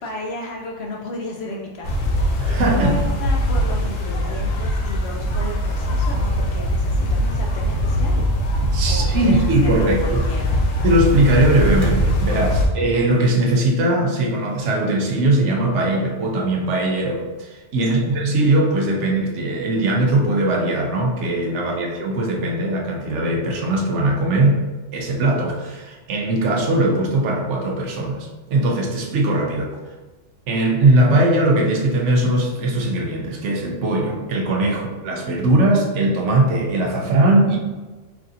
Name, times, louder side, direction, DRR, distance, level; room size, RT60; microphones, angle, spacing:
voice 1, 0.0-8.3 8.9-10.6 12.3-12.6 17.8-18.1 21.7-21.9, left 1 dB, 60° left, -1 dB, 0.7 m, -34 dB
sound 1, 1.8-12.7, equal, 90° left, 1.1 m, -21 dB
voice 2, 2.4-3.0 8.7-10.2 10.8-24.6 24.9-29.8 30.5-37.6, right 1 dB, 70° right, 1 dB, 0.9 m, -20 dB
3.3 x 2.6 x 3.8 m, 1.3 s
omnidirectional pair, 1.3 m